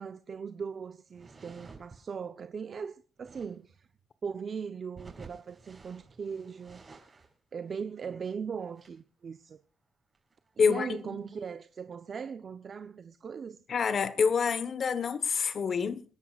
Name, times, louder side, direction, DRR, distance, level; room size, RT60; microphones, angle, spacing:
voice 1, 0.0-3.9 4.2-6.8 7.5-9.6 10.6-13.6, right 6 dB, 45° right, 0.7 m, -39 dB
sound 1, 1.1-2.0 3.2-3.6 4.9-7.4 7.7-7.8 8.0-8.1 8.6-9.0 10.1-10.5 11.0-11.1 11.3-11.8, right 4 dB, 30° right, 5.8 m, -52 dB
voice 2, 10.6-11.2 13.7-16.0, left 6 dB, 50° left, 1.1 m, -27 dB
28.0 x 11.0 x 2.4 m
cardioid pair, 90°, 0 cm